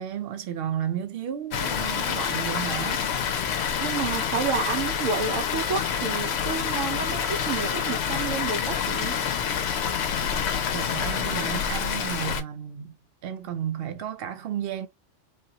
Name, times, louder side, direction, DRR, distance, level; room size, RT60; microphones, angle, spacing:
voice 1, 0.0-3.0 10.7-13.0 13.2-14.9, right 9 dB, 60° right, 0.8 m, -33 dB
Water, 1.5-12.4, left 7 dB, 65° left, 0.8 m, -27 dB
voice 2, 3.8-9.2, right 6 dB, 90° right, 1.0 m, -30 dB
3.5 x 2.2 x 2.7 m
omnidirectional pair, 1.3 m